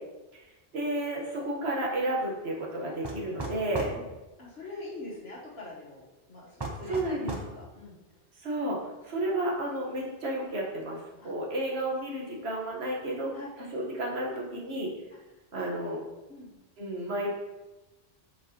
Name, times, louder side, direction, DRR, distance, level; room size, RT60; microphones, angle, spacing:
voice 1, 0.7-3.9 6.9-7.3 8.4-8.8 9.0-13.3 13.7-14.9 15.5-16.0 16.8-17.3, right 1 dB, 70° right, -2 dB, 1.5 m, -31 dB
sound 1, 3.0-4.0 6.6-7.5, right 2 dB, 30° right, 0.6 m, -36 dB
voice 2, 3.7-4.1 4.4-6.0 6.3-8.0 11.2-11.3 13.3-13.5 15.7-15.8 16.3-16.5, left 2 dB, 65° left, -6 dB, 1.5 m, -43 dB
7.3 x 4.9 x 2.8 m, 1.1 s
omnidirectional pair, 1.1 m